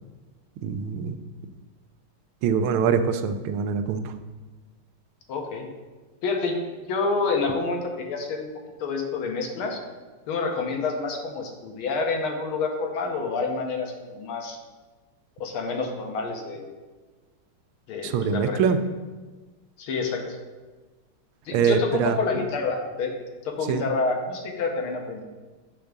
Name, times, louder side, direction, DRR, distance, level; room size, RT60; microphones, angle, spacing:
voice 1, 0.6-1.2 2.4-4.0 18.1-18.8 21.5-22.1 23.7-23.8, right 6 dB, 85° right, 8 dB, 1.4 m, -23 dB
voice 2, 5.3-5.7 6.2-8.5 8.8-9.8 10.3-14.6 15.4-16.7 17.9-18.8 19.8-20.2 21.5-23.1 23.4-25.2, left 4 dB, 90° left, 2 dB, 1.9 m, -28 dB
8.4 x 3.5 x 6.6 m, 1.3 s
omnidirectional pair, 2.3 m